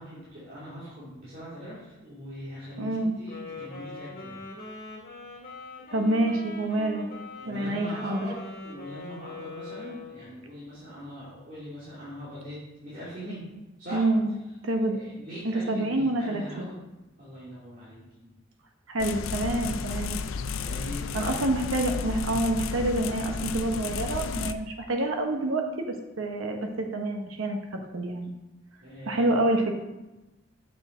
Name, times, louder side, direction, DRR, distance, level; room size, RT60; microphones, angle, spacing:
voice 1, 0.0-4.4 7.4-13.4 13.8-14.1 14.9-16.7 17.2-18.3 20.5-21.8 28.8-29.3, equal, 45° right, -11 dB, 2.5 m, -41 dB
voice 2, 2.8-3.1 5.9-7.1 7.5-8.3 13.9-15.0 15.4-16.7 18.9-20.2 21.1-28.3 29.1-29.7, right 1 dB, 85° right, 3 dB, 0.9 m, -27 dB
Wind instrument woodwind instrument, 3.2-10.4, left 3 dB, 45° left, 2.0 m, -42 dB
sound 1, 19.0-24.5, left 5 dB, 75° left, 0.4 m, -33 dB
7.0 x 6.5 x 3.9 m, 1.0 s
head